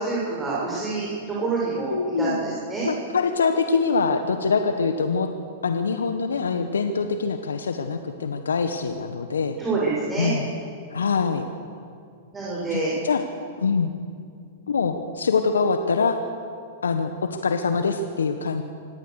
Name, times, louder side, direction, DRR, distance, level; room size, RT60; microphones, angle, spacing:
voice 1, 0.0-2.9 9.6-10.3 12.3-12.9, right 3 dB, 15° right, -6 dB, 7.0 m, -27 dB
voice 2, 1.9-2.4 2.8-5.3 5.6-9.5 10.2-10.5 10.9-11.4 12.7-13.2 13.6-13.9 14.7-16.2 16.8-18.6, left 5 dB, 75° left, 7 dB, 1.3 m, -24 dB
25.0 x 18.0 x 6.6 m, 2.3 s
figure-of-eight pair, 105°, 0 cm